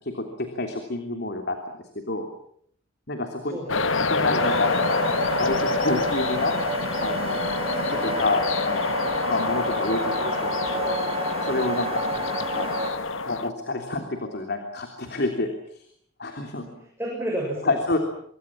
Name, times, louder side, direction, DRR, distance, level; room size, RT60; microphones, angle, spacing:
voice 1, 0.0-2.3 3.1-3.6 4.1-6.5 7.0-7.4 7.9-11.0 11.4-12.0 12.5-12.9 13.3-15.8 16.2-16.7 17.6-18.0, left 2 dB, 55° left, 5 dB, 3.3 m, -29 dB
voice 2, 3.5-3.9 12.1-12.4 16.7-17.8, right 1 dB, 10° right, -2 dB, 7.0 m, -32 dB
sound 1, 3.7-13.5, left 3 dB, 85° left, 1.7 m, -27 dB
sound 2, 4.4-12.9, right 2 dB, 30° right, 2.9 m, -31 dB
26.0 x 24.0 x 7.5 m, 0.67 s
head